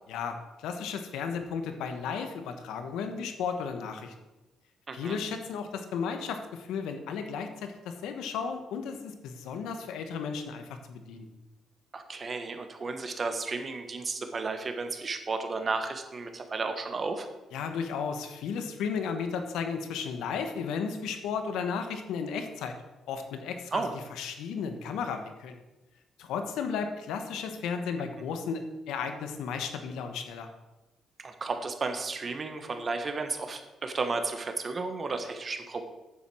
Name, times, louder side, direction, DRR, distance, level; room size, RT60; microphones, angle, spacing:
voice 1, 0.1-4.1 4.9-11.3 17.5-22.7 23.1-23.8 24.2-25.6 26.2-30.5, left 6 dB, 85° left, 6 dB, 1.2 m, -34 dB
voice 2, 4.9-5.2 11.9-17.3 23.7-23.9 31.2-35.8, right 3 dB, 40° right, 6 dB, 1.4 m, -33 dB
9.3 x 7.3 x 6.3 m, 1.1 s
cardioid pair, 90°, 0 cm